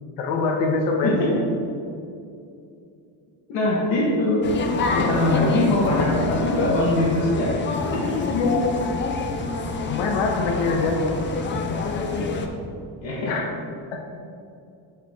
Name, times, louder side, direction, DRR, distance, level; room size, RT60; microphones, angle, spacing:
voice 1, 0.2-1.2 8.1-8.6 9.9-11.0 13.3-13.5 13.9-14.0, left 4 dB, 85° left, 2 dB, 1.1 m, -24 dB
voice 2, 3.5-4.4 4.9-7.5 7.9-8.2 13.0-13.3, left 2 dB, 70° left, -5 dB, 1.5 m, -22 dB
sound 1, 4.4-12.5, left 3 dB, 25° left, 0.4 m, -27 dB
8.5 x 4.5 x 3.6 m, 2.5 s
cardioid pair, 145°, 48 cm